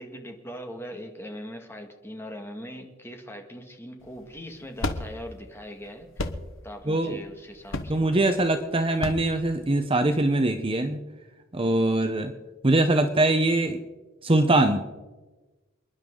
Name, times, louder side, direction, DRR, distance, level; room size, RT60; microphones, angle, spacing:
voice 1, 0.0-6.2 6.6-8.3, equal, 10° left, 3 dB, 1.8 m, -41 dB
sound 1, 4.0-10.2, left 2 dB, 90° left, 1.2 m, -35 dB
voice 2, 6.9-7.2 7.9-11.0 11.5-12.3 12.6-13.8 14.2-14.8, right 2 dB, 30° right, 7 dB, 0.9 m, -22 dB
28.5 x 10.5 x 3.9 m, 1.2 s
head